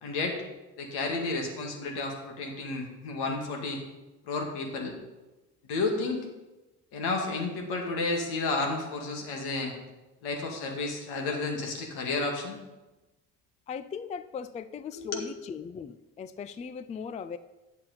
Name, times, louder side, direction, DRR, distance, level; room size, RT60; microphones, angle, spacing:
voice 1, 0.0-0.4 0.8-3.8 4.2-4.9 5.7-6.2 6.9-9.7 10.2-12.6 14.9-15.2, left 3 dB, 75° left, 2 dB, 1.9 m, -31 dB
voice 2, 13.7-17.4, left 6 dB, 20° left, 13 dB, 0.3 m, -38 dB
8.8 x 7.2 x 4.0 m, 1.1 s
hypercardioid pair, 60°, 40 cm